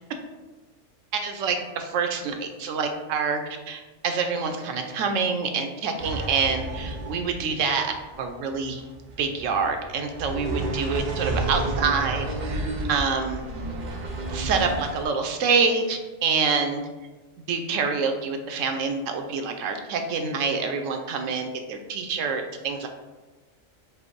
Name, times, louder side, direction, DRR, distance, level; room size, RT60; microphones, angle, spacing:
voice 1, 1.1-3.4 3.7-8.8 9.2-13.4 14.3-16.8 17.5-22.9, right 5 dB, 80° right, 5 dB, 0.9 m, -26 dB
sound 1, 6.0-15.0, right 2 dB, 55° right, 0.5 m, -31 dB
5.0 x 2.0 x 4.5 m, 1.2 s
omnidirectional pair, 1.3 m